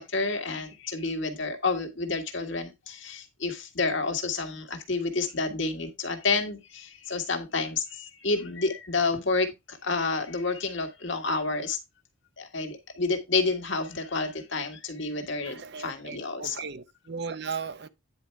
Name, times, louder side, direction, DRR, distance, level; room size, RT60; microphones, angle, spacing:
voice 1, 0.0-11.8 12.4-16.6, left 3 dB, 60° left, 1.8 m, -29 dB
voice 2, 15.4-17.9, right 5 dB, 50° right, 0.6 m, -37 dB
9.8 x 4.4 x 4.6 m
head